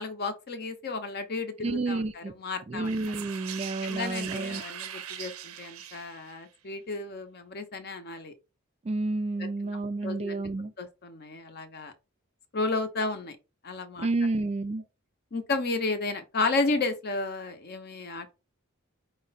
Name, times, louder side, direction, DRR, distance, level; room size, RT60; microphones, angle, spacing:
voice 1, 0.0-3.1 3.8-8.3 9.4-10.5 10.8-11.9 12.5-13.4 13.6-14.1 15.3-18.3, left 3 dB, 50° left, 0.7 m, -33 dB
voice 2, 1.6-2.3 2.7-4.6 8.9-10.7 14.0-14.8, right 2 dB, 30° right, 0.3 m, -30 dB
sound 1, 2.8-6.4, right 9 dB, 90° right, 0.6 m, -41 dB
4.9 x 2.1 x 3.9 m
head